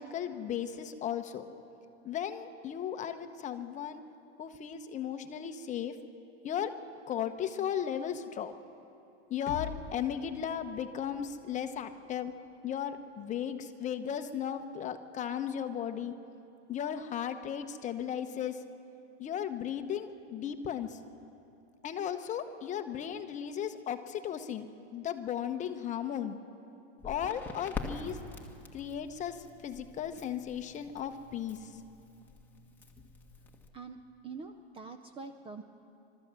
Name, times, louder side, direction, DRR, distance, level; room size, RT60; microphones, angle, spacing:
voice 1, 0.0-1.5 2.0-4.0 4.4-6.0 6.4-6.7 7.1-8.5 9.3-12.3 12.6-16.1 16.7-18.6 19.2-21.0 21.8-24.7 24.9-26.4 27.0-28.2 28.7-31.8, left 9 dB, 20° left, 8 dB, 0.9 m, -36 dB
sound 1, 9.5-13.4, left 11 dB, 50° left, 1.2 m, -47 dB
Crackle, 27.0-33.7, left 4 dB, 5° left, 1.6 m, -45 dB
voice 2, 33.7-35.6, right 4 dB, 15° right, 7 dB, 0.5 m, -45 dB
26.5 x 13.0 x 7.5 m, 2.7 s
supercardioid pair, 145°, 34 cm